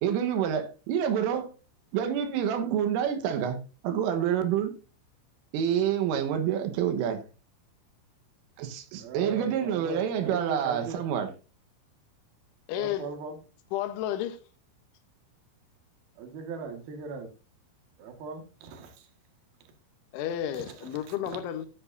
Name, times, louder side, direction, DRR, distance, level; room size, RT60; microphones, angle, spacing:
voice 1, 0.0-1.5 1.9-4.7 5.5-7.2 8.6-11.3, right 9 dB, 90° right, 3.8 m, -28 dB
voice 2, 9.0-11.0 12.8-13.3 16.2-17.3 18.0-18.9, right 5 dB, 60° right, 3.2 m, -39 dB
voice 3, 12.7-13.1 13.7-14.4 20.1-21.7, left 11 dB, 75° left, 3.4 m, -32 dB
14.0 x 10.0 x 2.7 m
omnidirectional pair, 5.7 m